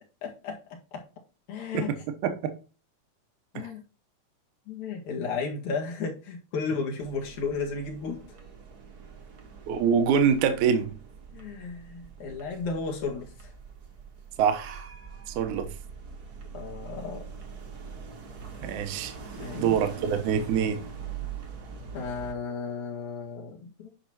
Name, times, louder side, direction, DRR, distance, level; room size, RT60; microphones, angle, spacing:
voice 1, 0.2-0.6 0.9-1.0 1.5-1.9 3.5-3.8 4.7-8.2 11.3-13.5 16.5-17.2 19.4-19.8 21.9-23.9, left 4 dB, 70° left, 3.2 m, -34 dB
sound 1, 7.0-22.3, right 6 dB, 45° right, 1.3 m, -43 dB
voice 2, 9.7-10.9 14.4-14.9 15.3-15.7 18.6-19.1 19.5-20.8, right 7 dB, 75° right, 2.4 m, -25 dB
10.0 x 5.9 x 2.9 m
omnidirectional pair, 3.7 m